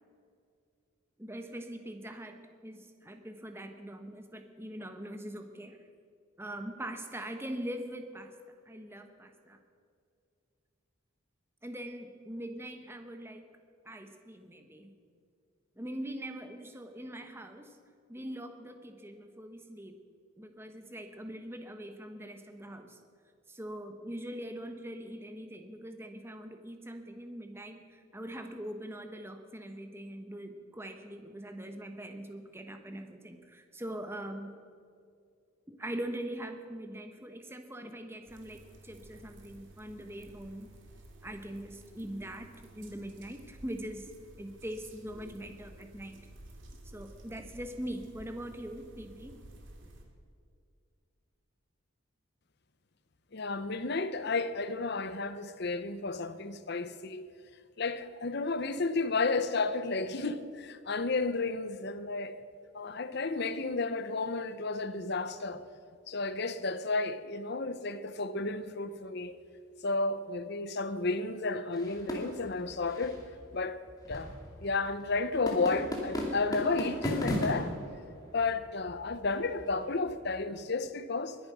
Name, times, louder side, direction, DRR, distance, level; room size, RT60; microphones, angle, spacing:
voice 1, 1.2-5.8 6.4-8.3 8.7-9.6 11.6-13.4 13.8-14.9 15.8-17.8 18.1-20.0 20.4-23.0 23.5-34.5 35.7-40.7 41.2-44.1 44.4-46.3 46.8-49.4, right 1 dB, 10° right, 1.0 m, -42 dB
sound 1, 38.2-50.0, right 1 dB, 60° right, 2.4 m, -53 dB
voice 2, 53.3-57.3 57.8-62.4 62.7-65.6 66.1-69.4 69.8-73.2 73.5-73.8 74.1-74.3 74.6-77.7 78.3-81.4, left 3 dB, 50° left, 0.7 m, -32 dB
sound 2, 71.7-80.3, equal, 15° left, 2.4 m, -38 dB
21.5 x 10.5 x 6.1 m
head